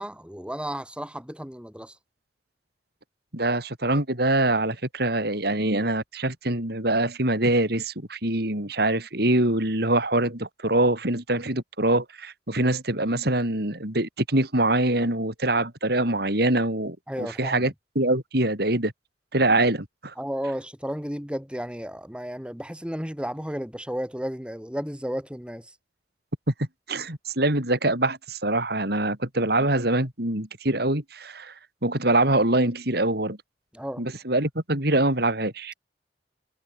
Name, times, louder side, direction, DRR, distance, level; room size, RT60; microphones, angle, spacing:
voice 1, 0.0-2.0 17.1-17.7 20.2-25.7 33.7-34.0, equal, 5° right, 7.9 m, -33 dB
voice 2, 3.3-18.9 19.3-20.1 26.6-31.5 31.8-33.4 34.0-35.7, right 2 dB, 60° right, 5.8 m, -24 dB
head